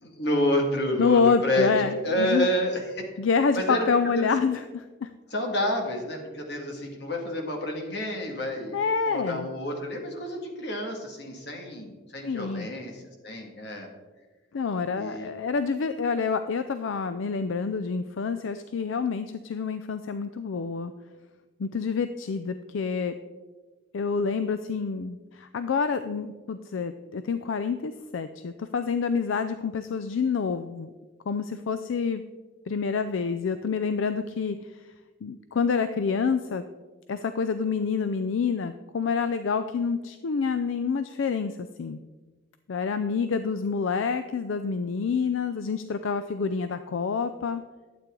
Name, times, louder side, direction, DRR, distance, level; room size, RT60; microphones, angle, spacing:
voice 1, 0.0-1.7 2.0-3.2 3.5-4.3 5.3-8.8 9.1-13.9 15.0-15.3, equal, 55° left, 1 dB, 2.0 m, -29 dB
voice 2, 1.0-2.5 3.2-5.1 8.7-9.5 12.2-12.7 14.5-20.9 21.6-23.1 23.9-30.9 31.3-32.2 32.7-34.7 35.2-36.6 37.1-42.0 42.7-47.6, left 5 dB, 75° left, 10 dB, 0.4 m, -27 dB
12.0 x 8.4 x 3.7 m, 1.3 s
head